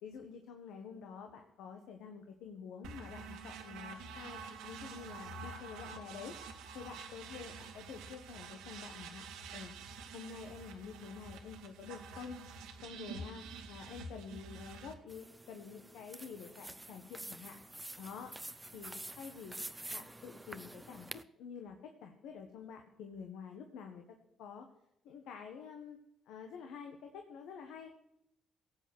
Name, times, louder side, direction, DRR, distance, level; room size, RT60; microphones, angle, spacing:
voice 1, 0.0-6.3 6.7-9.3 9.5-9.7 10.1-12.4 12.8-17.6 18.0-18.3 18.7-19.6 19.9-21.1 21.4-24.0 24.4-24.7 25.0-26.0 26.3-27.9, left 6 dB, 80° left, 4 dB, 1.5 m, -48 dB
sound 1, 2.8-14.9, right 4 dB, 85° right, 1.7 m, -48 dB
sound 2, 15.1-21.2, right 1 dB, 15° right, 0.7 m, -48 dB
17.5 x 8.0 x 6.2 m, 0.80 s
supercardioid pair, 65°, 0 cm